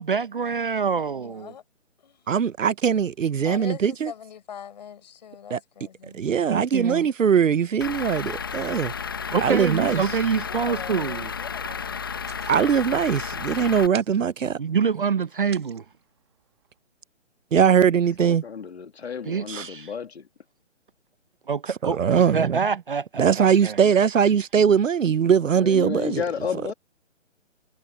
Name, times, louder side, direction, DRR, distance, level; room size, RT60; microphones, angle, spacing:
voice 1, 0.0-1.5 6.5-7.1 9.3-11.3 14.6-15.8 19.2-19.9 21.5-23.8, right 6 dB, 45° right, 0.9 m, -26 dB
voice 2, 0.9-1.6 2.0-2.3 3.4-6.2 10.5-12.4, left 8 dB, 35° left, 7.7 m, -42 dB
voice 3, 2.3-4.1 5.5-5.6 6.1-8.9 9.4-10.0 12.5-14.6 17.5-18.4 19.5-19.7 21.8-22.6 23.2-26.2, right 7 dB, 85° right, 0.9 m, -21 dB
Truck / Idling, 7.8-13.9, left 6 dB, 20° left, 0.9 m, -32 dB
sound 1, 10.2-16.8, right 11 dB, 20° right, 2.0 m, -49 dB
voice 4, 18.2-20.2 25.6-26.7, left 6 dB, 55° left, 2.2 m, -31 dB
hypercardioid pair, 175°, 38 cm